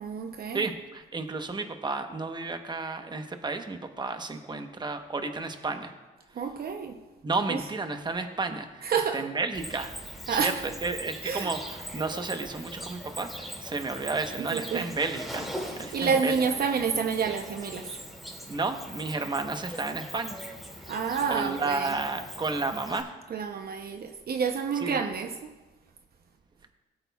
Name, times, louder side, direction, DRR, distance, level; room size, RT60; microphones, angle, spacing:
voice 1, 0.0-0.7 6.4-7.0 7.5-7.6 8.8-9.2 10.3-10.6 11.2-11.5 14.4-14.9 15.9-17.9 20.9-21.9 23.3-25.5, right 6 dB, 50° right, 6 dB, 0.7 m, -29 dB
voice 2, 0.5-5.9 7.2-8.9 9.1-9.9 10.3-15.5 15.8-16.4 18.5-20.4 21.3-23.1 24.8-25.0, right 3 dB, 20° right, 6 dB, 1.0 m, -32 dB
Cricket, 9.5-23.0, equal, ahead, 2.3 m, -41 dB
17.5 x 8.9 x 2.3 m, 1.2 s
cardioid pair, 90°, 20 cm